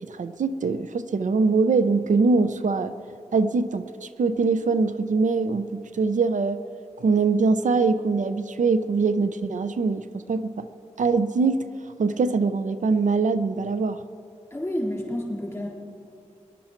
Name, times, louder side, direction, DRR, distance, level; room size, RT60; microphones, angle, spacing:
voice 1, 0.0-2.9 3.3-6.6 7.0-10.7 11.0-11.6 12.0-14.0, right 4 dB, 85° right, 11 dB, 0.5 m, -23 dB
voice 2, 14.5-15.7, left 1 dB, 15° left, -2 dB, 3.7 m, -29 dB
20.5 x 11.0 x 4.4 m, 2.6 s
wide cardioid pair, 70°, 13 cm